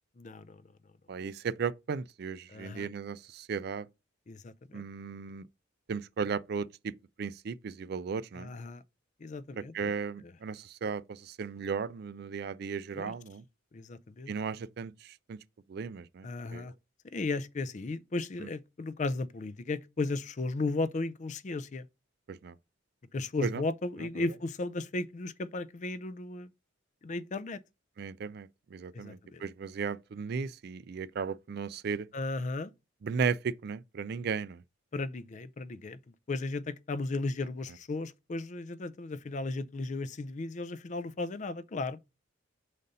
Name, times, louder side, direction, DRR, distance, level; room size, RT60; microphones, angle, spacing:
voice 1, 0.2-0.6 2.5-2.9 4.3-4.8 8.3-8.8 9.2-9.9 10.2-10.3 13.0-13.1 13.7-14.3 16.2-16.7 17.1-21.9 23.1-26.5 27.0-27.6 28.9-29.4 32.1-32.7 34.9-36.0 36.3-42.0, left 3 dB, 40° left, 0.4 m, -35 dB
voice 2, 1.1-3.9 4.7-5.4 5.9-6.9 7.2-8.5 9.7-13.4 14.3-15.4 15.7-16.3 16.5-16.7 18.4-18.5 22.3-22.5 23.4-23.6 28.0-32.1 33.0-34.6, right 5 dB, 50° right, 0.4 m, -35 dB
5.1 x 4.1 x 5.3 m
head